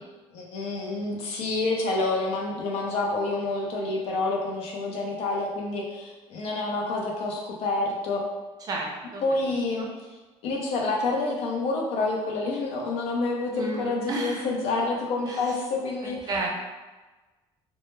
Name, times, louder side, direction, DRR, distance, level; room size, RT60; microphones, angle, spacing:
voice 1, 0.3-8.2 9.2-9.9 10.4-16.2, left 3 dB, 70° left, -1 dB, 0.5 m, -28 dB
voice 2, 8.7-9.2 9.8-9.9 13.5-14.5 15.3-15.5 16.0-16.5, right 2 dB, 35° right, -1 dB, 0.4 m, -32 dB
2.1 x 2.1 x 3.1 m, 1.2 s
cardioid pair, 150°, 11 cm